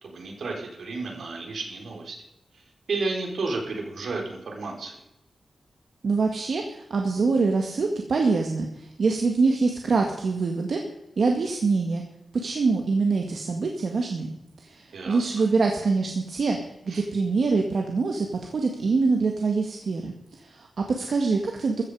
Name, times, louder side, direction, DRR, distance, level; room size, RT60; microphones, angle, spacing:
voice 1, 0.0-2.2 2.5-5.0 14.9-15.4 16.9-17.1, right 3 dB, 80° right, 1 dB, 4.1 m, -32 dB
voice 2, 6.0-10.8 11.2-12.0 12.4-14.3 14.6-16.6 16.9-21.8, right 4 dB, 65° right, 2 dB, 2.0 m, -24 dB
14.5 x 14.5 x 5.0 m, 0.85 s
wide cardioid pair, 110°, 0 cm